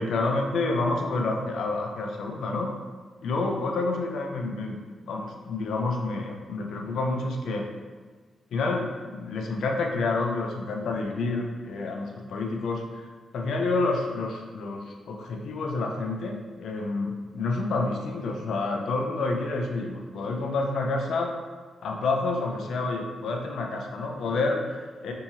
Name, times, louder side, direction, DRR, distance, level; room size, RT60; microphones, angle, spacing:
voice 1, 0.0-2.7 3.2-7.7 8.5-13.1 13.3-21.4 21.8-25.1, left 3 dB, 80° left, 2 dB, 0.4 m, -29 dB
3.5 x 2.9 x 2.8 m, 1.4 s
wide cardioid pair, 140°, 0 cm